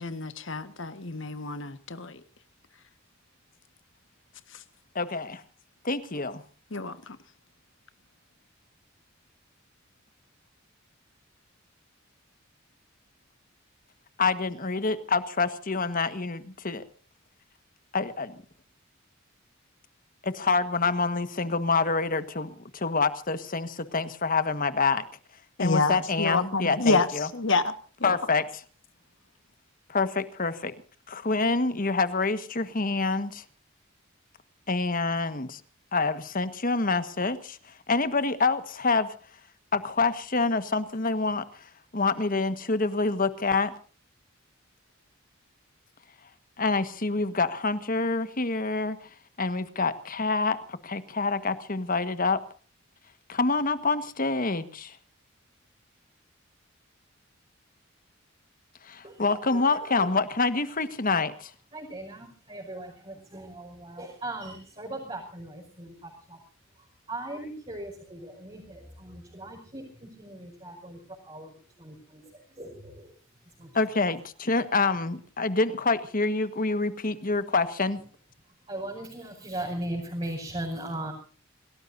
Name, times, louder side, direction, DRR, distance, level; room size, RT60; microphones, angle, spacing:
voice 1, 0.0-2.2 4.5-4.6 6.7-7.2 25.6-27.7 28.0-28.2, left 3 dB, 65° left, 1.5 m, -28 dB
voice 2, 4.9-5.4 5.8-6.4 14.2-16.8 17.9-18.4 20.2-25.0 25.6-27.3 28.0-28.4 29.9-30.7 31.1-33.4 34.7-35.6 35.9-37.6 37.9-39.1 39.7-41.4 41.9-43.7 46.6-49.0 49.4-52.4 53.3-55.0 58.9-61.5 73.7-78.0, left 3 dB, 45° left, 1.5 m, -27 dB
voice 3, 59.0-60.1 61.7-66.4 66.8-73.1 73.6-73.7 78.7-81.1, right 1 dB, 30° right, 5.6 m, -39 dB
27.5 x 18.5 x 2.7 m
head